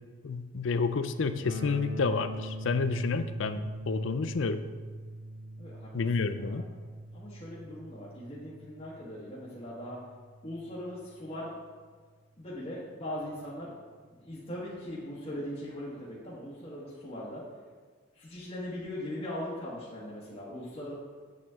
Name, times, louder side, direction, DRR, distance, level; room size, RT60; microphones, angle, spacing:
voice 1, 0.2-4.6 5.9-6.6, left 4 dB, 70° left, 11 dB, 0.5 m, -30 dB
sound 1, 1.4-11.4, right 1 dB, 75° right, 1.2 m, -42 dB
voice 2, 5.6-5.9 6.2-6.6 7.1-10.0 10.4-11.5 12.4-13.7 14.1-17.4 18.1-20.9, left 1 dB, 30° left, -8 dB, 1.5 m, -40 dB
8.2 x 7.1 x 3.7 m, 1.5 s
head